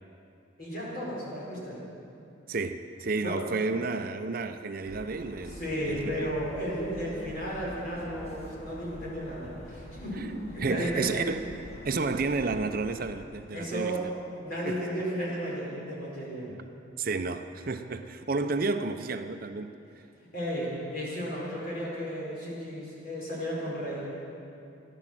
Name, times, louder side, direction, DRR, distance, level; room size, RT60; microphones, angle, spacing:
voice 1, 0.6-1.8 3.2-3.4 5.4-11.1 13.5-14.1 14.4-16.5 20.3-24.1, equal, 45° left, -5 dB, 4.8 m, -34 dB
voice 2, 2.5-6.3 10.2-10.3 10.6-11.4 11.8-14.1 14.6-14.8 16.5-16.6 17.0-19.7, right 3 dB, 45° right, 8 dB, 0.5 m, -31 dB
Ladehammeren Keynote, 4.8-13.2, equal, 30° left, 1.5 m, -45 dB
16.0 x 11.0 x 7.7 m, 2.7 s
head